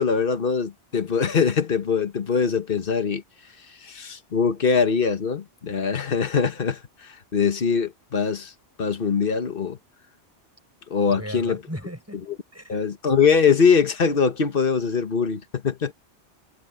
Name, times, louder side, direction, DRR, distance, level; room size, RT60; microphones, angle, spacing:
voice 1, 0.0-3.2 3.8-8.5 8.8-9.8 10.9-11.6 12.7-15.9, left 6 dB, 50° left, 1.5 m, -22 dB
voice 2, 11.1-12.2 12.5-12.8, equal, 15° right, 5.6 m, -36 dB
omnidirectional pair, 1.2 m